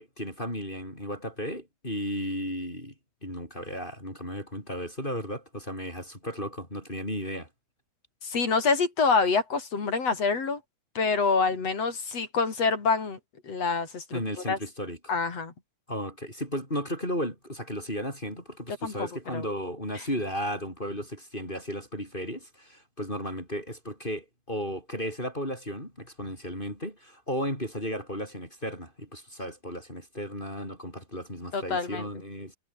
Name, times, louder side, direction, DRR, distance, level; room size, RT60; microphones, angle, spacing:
voice 1, 0.0-2.9 3.2-7.5 14.1-15.1 15.9-32.6, equal, 15° left, 7.4 m, -34 dB
voice 2, 8.2-10.6 10.9-13.2 13.4-14.0 14.5-14.6 15.1-15.5 18.8-19.4 31.5-32.1, left 4 dB, 45° left, 4.6 m, -26 dB
omnidirectional pair, 4.0 m